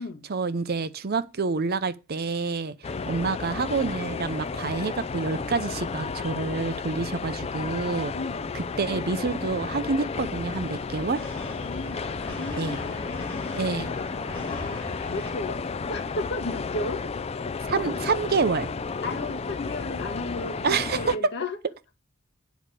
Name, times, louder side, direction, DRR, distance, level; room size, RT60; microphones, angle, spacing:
voice 1, 0.3-8.1 8.5-11.2 12.6-12.8 13.5-13.9 17.6-18.7 20.6-21.0, right 4 dB, 45° right, 0.6 m, -28 dB
sound 1, 2.8-21.2, left 4 dB, 30° left, 0.4 m, -32 dB
voice 2, 2.9-3.3 8.1-8.5 11.6-15.6 15.9-17.1 19.0-21.6, left 2 dB, 50° left, 1.8 m, -35 dB
sound 2, 11.2-15.3, left 1 dB, 10° left, 3.9 m, -41 dB
9.3 x 5.0 x 6.9 m
head